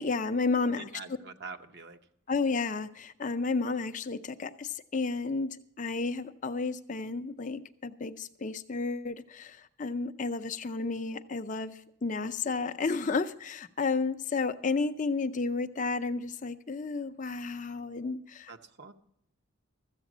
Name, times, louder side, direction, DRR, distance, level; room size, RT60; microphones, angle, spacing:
voice 1, 0.0-0.9 2.3-18.5, left 4 dB, 35° left, 9 dB, 0.5 m, -32 dB
voice 2, 0.6-2.0 18.5-18.9, right 4 dB, 50° right, 8 dB, 0.8 m, -45 dB
14.0 x 8.1 x 6.1 m, 0.74 s
head